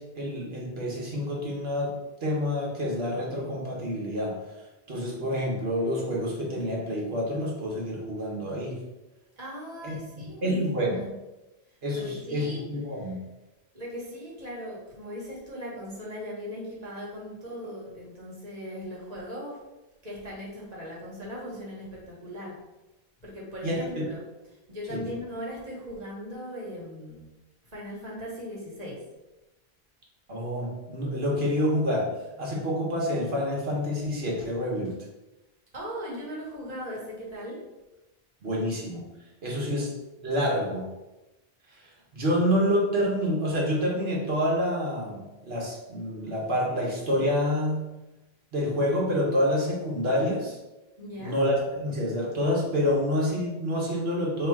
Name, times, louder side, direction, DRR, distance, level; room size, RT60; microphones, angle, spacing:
voice 1, 0.0-2.0 2.2-4.4 4.9-8.8 9.8-10.9 11.8-13.2 23.6-24.0 24.9-25.0 30.3-32.1 32.4-34.9 38.4-39.0 39.4-39.9 40.2-40.9 42.1-47.9 48.5-50.6 51.2-54.5, equal, 70° right, -2 dB, 1.3 m, -27 dB
voice 2, 9.4-11.1 11.9-12.6 13.7-19.6 20.0-22.5 23.2-24.2 24.7-27.3 27.7-29.0 35.7-37.6 51.0-51.4, equal, 40° right, -6 dB, 1.5 m, -38 dB
3.1 x 3.0 x 4.6 m, 1.0 s
omnidirectional pair, 1.1 m